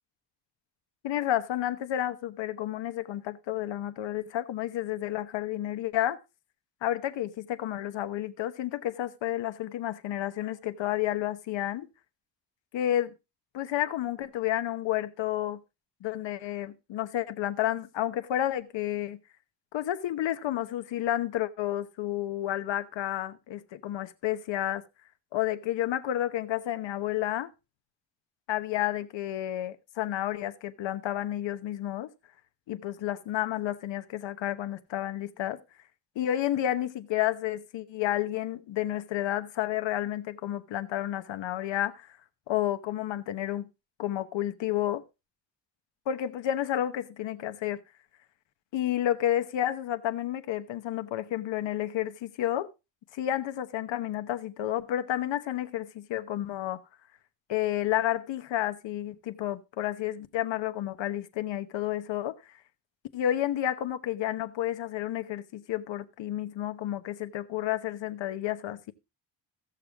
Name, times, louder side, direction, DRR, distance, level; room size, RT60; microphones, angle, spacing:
voice 1, 1.0-6.2 6.8-11.9 12.7-13.1 13.5-15.6 16.0-19.2 19.7-24.8 25.3-27.5 28.5-32.1 32.7-35.6 36.1-42.1 42.5-43.7 44.0-45.0 46.1-47.8 48.7-52.7 53.1-56.8 57.5-62.4 63.1-68.9, left 12 dB, 85° left, 1.1 m, -31 dB
16.0 x 6.8 x 3.5 m
wide cardioid pair, 160°, 43 cm